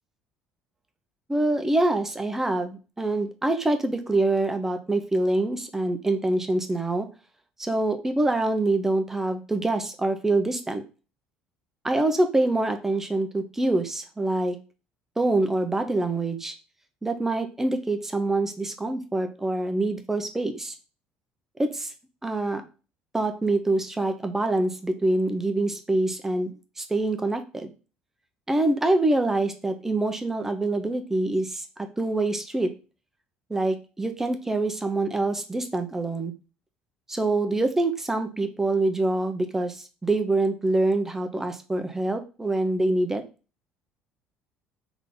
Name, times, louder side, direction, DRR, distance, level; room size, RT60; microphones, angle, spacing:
voice 1, 1.3-7.1 7.6-10.8 11.8-14.6 15.2-16.5 17.0-20.7 21.6-21.9 22.2-22.6 23.1-27.7 28.5-31.6 32.0-32.7 33.5-36.3 37.1-43.2, right 2 dB, 10° right, 7 dB, 0.7 m, -25 dB
3.7 x 3.5 x 3.8 m, 0.34 s
cardioid pair, 110°, 3 cm